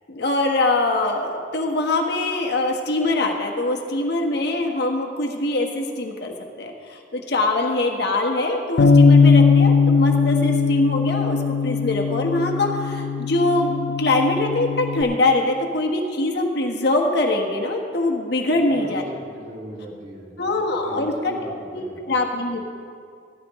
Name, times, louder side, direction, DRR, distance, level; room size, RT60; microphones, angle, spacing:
voice 1, 0.1-19.0 20.4-21.8 22.1-22.6, left 2 dB, 60° left, 1 dB, 1.4 m, -23 dB
Bass guitar, 8.8-15.0, left 5 dB, 80° left, 0.6 m, -18 dB
voice 2, 18.5-22.2, right 1 dB, 40° right, -4 dB, 2.5 m, -39 dB
15.5 x 13.5 x 3.1 m, 2.3 s
head